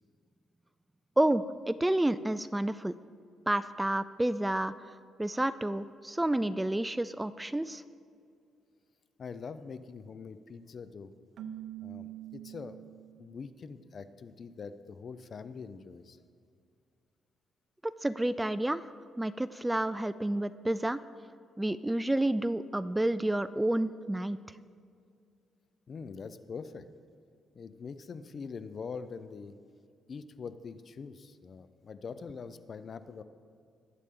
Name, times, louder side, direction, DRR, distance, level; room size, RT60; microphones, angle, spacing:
voice 1, 1.2-3.0 3.5-4.7 5.2-7.8 17.8-18.9 19.2-21.0 21.6-24.6, right 1 dB, 10° right, 14 dB, 0.3 m, -30 dB
voice 2, 9.2-11.1 11.8-12.8 13.2-16.2 25.9-26.9 27.5-29.5 30.1-33.2, left 5 dB, 45° left, 12 dB, 0.6 m, -43 dB
Keyboard (musical), 11.4-13.3, right 11 dB, 70° right, 0.8 m, -44 dB
20.5 x 8.3 x 3.8 m, 2.3 s
cardioid pair, 90°, 0 cm